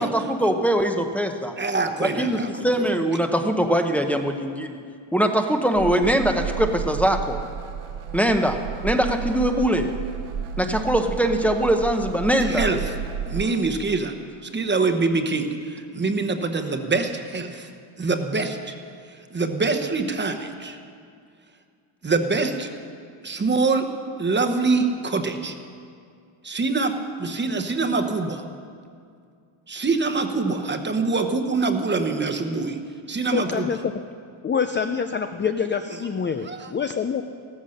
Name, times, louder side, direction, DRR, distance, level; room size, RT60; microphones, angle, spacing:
voice 1, 0.0-1.6 2.0-4.8 5.1-7.4 8.1-9.9 10.6-12.7, equal, 5° left, 5 dB, 0.7 m, -22 dB
voice 2, 1.6-2.5 12.4-12.8 13.3-14.1 14.4-17.7 18.0-18.7 19.3-20.8 22.0-22.7 23.2-23.9 24.2-25.5 26.4-28.4 29.7-32.8 33.1-33.7 36.4-36.7, right 3 dB, 20° right, 6 dB, 0.9 m, -24 dB
sound 1, 5.7-13.6, right 8 dB, 75° right, 1.2 m, -32 dB
voice 3, 33.3-33.9 34.4-37.2, left 6 dB, 25° left, 7 dB, 0.3 m, -26 dB
16.0 x 14.0 x 6.5 m, 2.2 s
wide cardioid pair, 170°, 50 cm